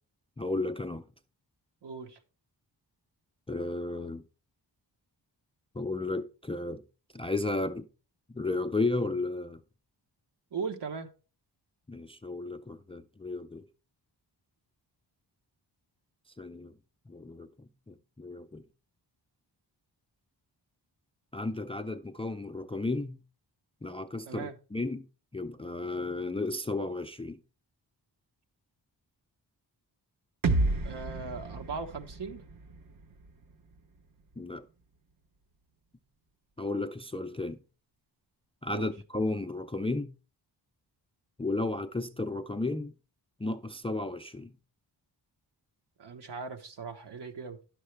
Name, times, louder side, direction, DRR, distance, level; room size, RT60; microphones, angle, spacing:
voice 1, 0.4-1.1 3.5-4.2 5.7-6.8 7.1-7.9 8.3-9.6 11.9-13.7 16.4-16.7 17.1-18.6 21.3-23.2 23.8-25.1 25.3-27.4 34.4-34.7 36.6-37.6 38.6-40.1 41.4-42.9 43.4-44.5, left 2 dB, 15° left, 0.3 m, -33 dB
voice 2, 1.8-2.2 10.5-11.1 24.3-24.5 30.8-32.4 38.7-38.9 46.0-47.6, right 5 dB, 70° right, 1.1 m, -38 dB
sound 1, 30.4-34.4, right 2 dB, 50° right, 0.8 m, -32 dB
10.5 x 6.5 x 3.2 m
wide cardioid pair, 120°, 43 cm